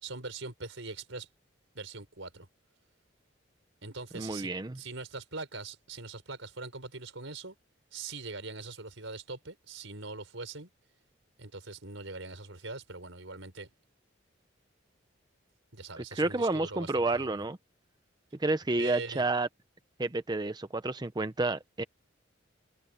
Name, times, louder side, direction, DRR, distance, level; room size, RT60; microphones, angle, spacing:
voice 1, 0.0-1.3 1.7-2.5 3.8-7.6 7.9-10.7 11.4-13.7 15.7-17.4 18.8-19.3, right 3 dB, 85° right, 4.6 m, -42 dB
voice 2, 4.1-4.8 16.1-17.6 18.4-19.5 20.0-21.8, right 2 dB, 20° right, 0.6 m, -30 dB
head